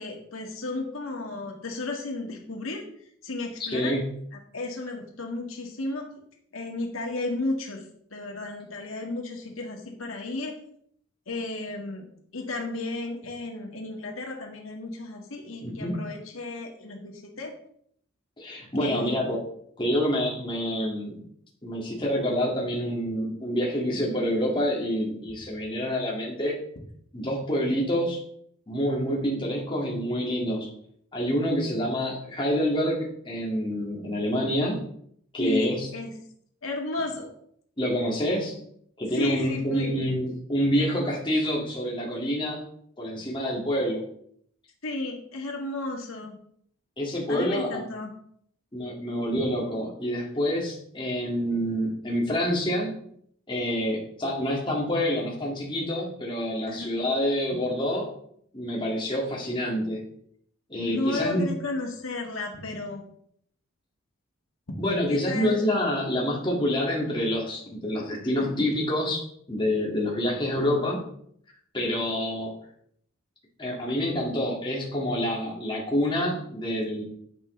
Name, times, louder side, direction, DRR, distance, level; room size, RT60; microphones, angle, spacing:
voice 1, 0.0-2.9 3.2-4.0 4.5-6.1 6.5-7.8 8.1-10.5 11.3-12.1 12.3-17.5 18.8-19.3 35.4-36.2 36.6-37.3 39.1-40.0 44.8-46.4 47.3-48.1 56.7-56.9 60.8-63.0 64.7-64.8 65.1-65.6 68.4-68.5, left 2 dB, 90° left, 1 dB, 1.9 m, -33 dB
voice 2, 3.6-4.1 15.6-16.1 18.4-19.4 19.8-21.2 21.6-26.6 27.1-28.2 28.7-30.7 31.1-34.9 35.3-35.9 37.8-38.6 39.0-42.6 43.0-44.0 47.0-47.9 48.7-53.0 53.5-58.1 58.5-60.1 60.7-61.5 64.8-69.2 69.5-71.0 71.7-72.6 73.6-77.0, equal, 25° left, -3 dB, 2.2 m, -27 dB
10.5 x 7.5 x 3.3 m, 0.66 s
head